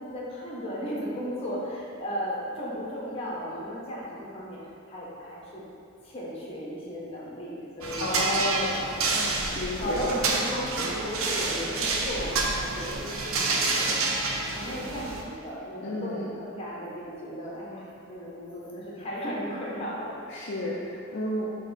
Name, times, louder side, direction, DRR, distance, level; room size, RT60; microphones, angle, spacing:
voice 1, 0.0-4.6 4.9-5.6 6.0-8.2 9.1-9.4 9.8-13.9 14.5-20.1 20.5-20.8, equal, 30° left, -6 dB, 1.4 m, -35 dB
sound 1, 7.8-15.2, right 3 dB, 75° right, 0.6 m, -28 dB
voice 2, 8.0-8.8 9.5-10.1 15.8-16.3 20.3-21.5, left 1 dB, 60° left, -5 dB, 0.6 m, -31 dB
6.5 x 3.6 x 4.1 m, 2.5 s
head